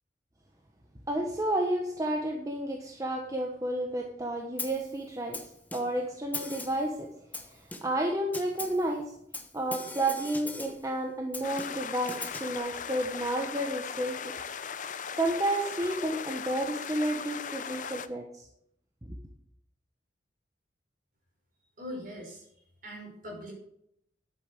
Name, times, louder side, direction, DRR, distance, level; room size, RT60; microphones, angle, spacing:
voice 1, 1.1-5.4 5.7-7.1 7.4-9.1 9.5-14.3 15.2-18.5 19.0-19.2, right 1 dB, 20° right, 1 dB, 1.3 m, -31 dB
Snare drum, 4.6-4.9 5.3-6.0 6.3-6.9 7.3-8.0 8.3-8.9 9.3-10.9 11.3-12.6, left 3 dB, 10° left, 1.2 m, -40 dB
sound 1, 11.4-18.1, left 7 dB, 45° left, 0.7 m, -38 dB
voice 2, 21.8-22.4 22.8-23.5, equal, 50° right, -1 dB, 6.0 m, -41 dB
11.0 x 8.8 x 6.3 m, 0.72 s
head